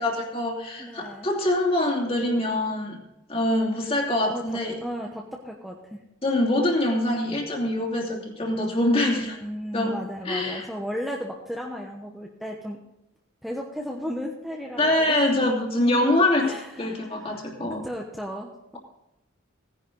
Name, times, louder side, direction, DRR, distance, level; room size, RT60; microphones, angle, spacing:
voice 1, 0.0-3.0 3.3-4.8 6.2-9.3 9.7-9.9 10.2-10.6 14.8-17.8, left 1 dB, 30° left, -1 dB, 3.0 m, -24 dB
voice 2, 0.8-1.3 4.3-6.0 9.1-12.8 13.4-15.2 16.4-17.5 17.8-18.8, equal, ahead, -1 dB, 1.1 m, -35 dB
17.0 x 10.5 x 4.0 m, 0.89 s
head